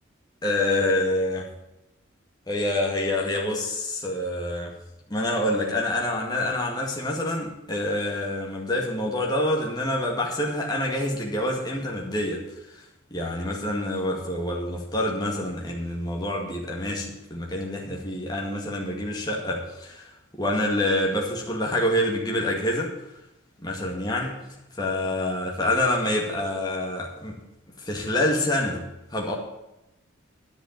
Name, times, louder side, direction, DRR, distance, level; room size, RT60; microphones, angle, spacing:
voice 1, 0.4-1.5 2.5-4.7 5.1-12.4 12.7-12.9 13.1-22.9 23.6-24.3 24.8-27.4 27.8-28.8 29.1-29.3, left 1 dB, 20° left, -1 dB, 2.0 m, -27 dB
10.5 x 6.9 x 8.7 m, 0.91 s
head